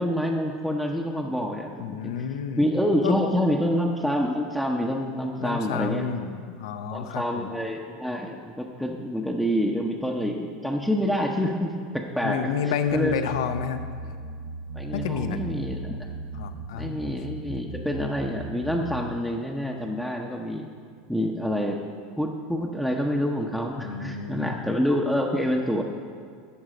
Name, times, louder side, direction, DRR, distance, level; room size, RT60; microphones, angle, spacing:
voice 1, 0.0-2.1 2.6-6.1 6.9-12.4 12.9-13.1 14.7-16.1 16.7-20.7 21.1-21.8 22.2-25.8, equal, ahead, 0 dB, 0.7 m, -27 dB
voice 2, 1.8-2.6 3.0-3.1 5.4-7.5 12.2-13.9 14.9-15.4 16.3-17.1 23.8-24.6, left 7 dB, 75° left, 9 dB, 0.7 m, -30 dB
sound 1, 12.9-19.1, right 2 dB, 75° right, 2.0 m, -37 dB
11.5 x 4.0 x 7.6 m, 2.2 s
hypercardioid pair, 100°, 2 cm